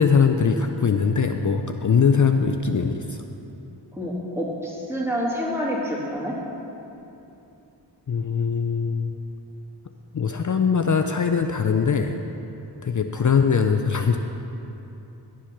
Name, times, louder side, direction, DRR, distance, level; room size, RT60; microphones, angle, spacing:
voice 1, 0.0-3.2 8.1-9.2 10.1-12.2 12.8-14.2, left 6 dB, 45° left, 6 dB, 0.6 m, -21 dB
voice 2, 3.9-6.4, equal, 5° right, -5 dB, 2.8 m, -27 dB
11.5 x 7.4 x 5.9 m, 2.9 s
cardioid pair, 50°, 44 cm